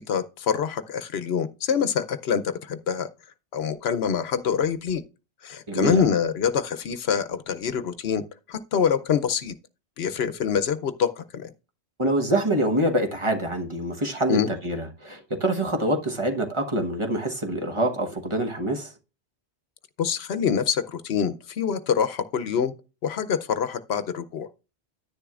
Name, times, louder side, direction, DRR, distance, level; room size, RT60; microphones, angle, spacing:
voice 1, 0.0-3.1 3.5-5.0 5.4-8.2 8.5-9.5 10.0-11.5 14.3-14.5 20.0-22.7 23.0-24.5, left 7 dB, 75° left, 0.9 m, -25 dB
voice 2, 5.7-6.1 12.0-18.9, right 1 dB, 30° right, 1.2 m, -25 dB
10.5 x 10.0 x 2.4 m
omnidirectional pair, 1.1 m